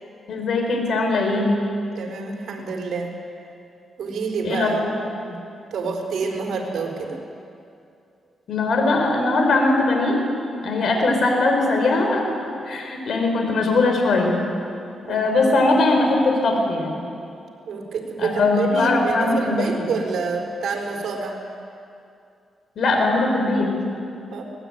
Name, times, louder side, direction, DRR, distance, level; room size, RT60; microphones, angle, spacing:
voice 1, 0.3-1.5 4.4-4.9 8.5-10.2 10.6-12.2 12.6-14.3 15.1-17.0 18.2-19.9 22.8-23.7, left 2 dB, 65° left, 2 dB, 5.4 m, -20 dB
voice 2, 1.9-3.1 4.0-4.8 5.2-5.4 5.7-7.2 15.1-15.2 17.7-21.4 24.3-24.4, right 4 dB, 70° right, 2 dB, 4.6 m, -27 dB
24.0 x 19.0 x 9.2 m, 2.5 s
cardioid pair, 100°, 0 cm